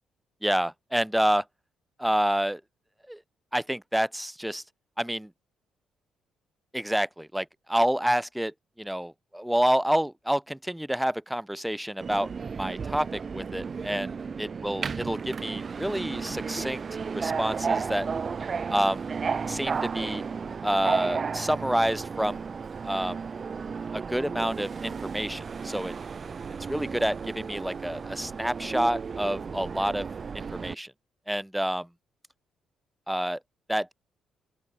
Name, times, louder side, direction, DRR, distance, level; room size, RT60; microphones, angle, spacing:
voice 1, 0.4-1.4 2.0-2.6 3.1-3.2 3.5-4.6 5.0-5.3 6.7-8.5 8.8-12.3 12.6-16.8 17.1-18.1 18.7-19.1 19.5-20.2 20.6-22.5 22.8-23.2 23.9-25.9 26.7-30.1 30.3-30.9 31.3-31.9 33.1-33.4 33.7-33.9, equal, 5° right, 2.0 m, -28 dB
Subway metro underground, 12.0-30.7, right 5 dB, 40° right, 3.6 m, -33 dB
open air
cardioid pair, 90°, 0 cm